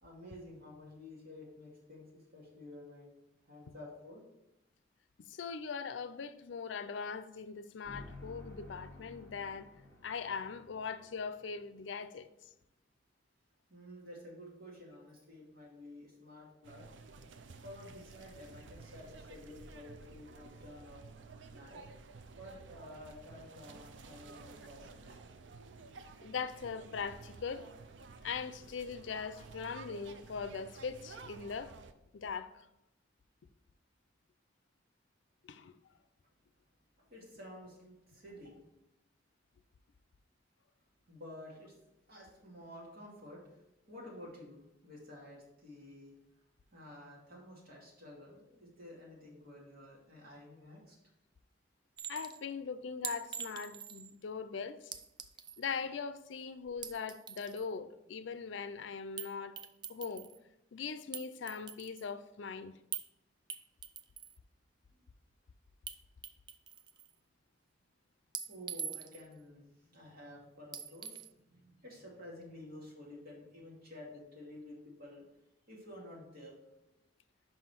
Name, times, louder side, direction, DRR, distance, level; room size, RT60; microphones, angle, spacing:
voice 1, 0.0-3.1 3.4-4.2 13.7-16.9 17.6-21.0 21.3-21.9 22.3-25.1 37.0-38.6 41.1-41.8 42.1-43.6 43.9-46.1 46.7-51.0 68.5-75.2 75.7-76.6, left 1 dB, 55° right, 2.4 m, -51 dB
voice 2, 5.3-9.7 10.0-12.3 26.2-27.7 28.2-31.7 32.1-32.7 35.4-35.7 52.1-54.9 55.6-59.6 59.9-60.3 60.7-62.7, left 5 dB, 85° left, 0.5 m, -41 dB
sound 1, 7.8-11.9, left 2 dB, 10° left, 2.3 m, -53 dB
sound 2, 16.6-31.9, right 4 dB, 85° right, 0.5 m, -53 dB
Chink clink, 52.0-52.4 53.0-54.1 54.9-55.7 56.7-57.7 59.2-59.3 59.6-60.4 61.1-62.1 62.9-63.1 63.5-64.4 65.9-66.0 66.2-67.1 68.3-69.3 70.7-71.3, right 8 dB, 25° right, 0.3 m, -43 dB
5.6 x 5.5 x 4.4 m
head